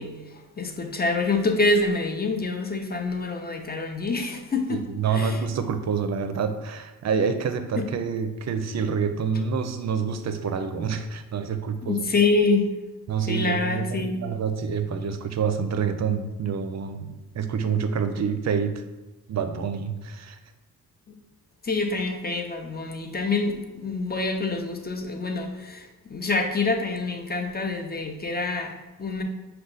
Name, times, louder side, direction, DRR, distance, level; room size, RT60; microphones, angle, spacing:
voice 1, 0.0-4.8 5.1-5.4 7.8-7.9 11.9-12.7 13.3-14.2 21.1-21.2 21.6-29.2, left 3 dB, 25° left, 4 dB, 0.6 m, -26 dB
voice 2, 4.7-12.1 13.1-18.8 19.3-20.4, right 6 dB, 50° right, 8 dB, 0.5 m, -27 dB
4.9 x 2.3 x 3.9 m, 1.1 s
cardioid pair, 60°, 36 cm